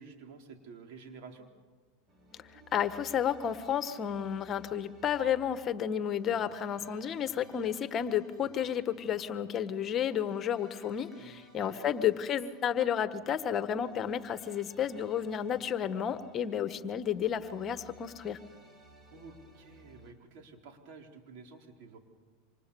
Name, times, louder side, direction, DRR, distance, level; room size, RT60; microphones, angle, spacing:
voice 1, 0.0-1.5 11.2-11.9 19.1-22.0, right 4 dB, 60° right, 3 dB, 4.2 m, -51 dB
sound 1, 2.1-20.1, right 1 dB, 30° right, 5.5 m, -58 dB
voice 2, 2.7-18.4, left 9 dB, 35° left, 11 dB, 1.4 m, -31 dB
28.5 x 26.0 x 7.1 m, 1.4 s
hypercardioid pair, 95°, 0 cm